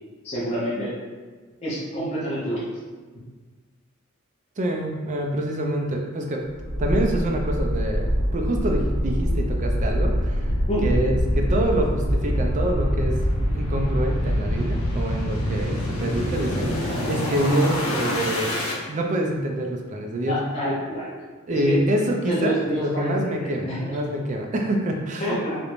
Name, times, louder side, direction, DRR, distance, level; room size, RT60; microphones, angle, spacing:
voice 1, 0.2-1.0 1.6-2.6 10.7-10.9 20.3-21.2 21.5-21.8 22.3-24.0 25.2-25.6, equal, 30° left, -8 dB, 0.5 m, -28 dB
voice 2, 4.6-6.4 6.8-8.1 8.3-10.5 10.8-13.2 13.5-18.5 18.9-20.4 21.5-25.4, right 1 dB, 35° right, 2 dB, 0.3 m, -26 dB
sound 1, 6.6-18.8, equal, 85° left, 0.6 m, -25 dB
2.5 x 2.1 x 3.0 m, 1.4 s
head